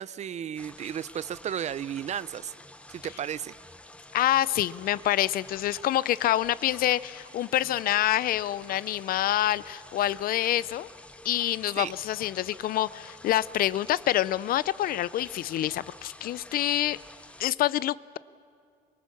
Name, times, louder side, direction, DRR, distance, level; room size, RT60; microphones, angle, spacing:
voice 1, 0.0-2.5 2.9-3.5 11.8-11.9, right 9 dB, 40° right, 19 dB, 0.5 m, -34 dB
sound 1, 0.6-17.5, left 1 dB, 5° left, 1.0 m, -49 dB
voice 2, 4.1-10.9 11.2-17.0 17.4-18.2, left 13 dB, 60° left, 20 dB, 0.5 m, -27 dB
23.5 x 22.0 x 7.1 m, 2.3 s
cardioid pair, 110°, 17 cm